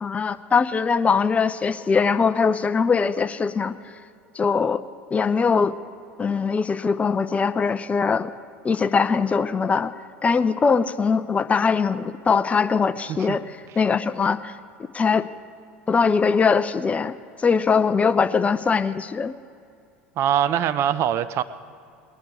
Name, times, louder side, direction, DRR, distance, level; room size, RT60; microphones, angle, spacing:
voice 1, 0.0-3.7 4.3-4.8 5.1-5.8 6.2-8.3 8.6-9.9 10.2-13.4 13.8-14.5 14.9-15.3 15.9-19.3, left 5 dB, 20° left, 0.6 m, -21 dB
voice 2, 20.2-21.4, right 10 dB, 45° right, 0.6 m, -22 dB
19.5 x 10.5 x 4.7 m
hypercardioid pair, 75°, 6 cm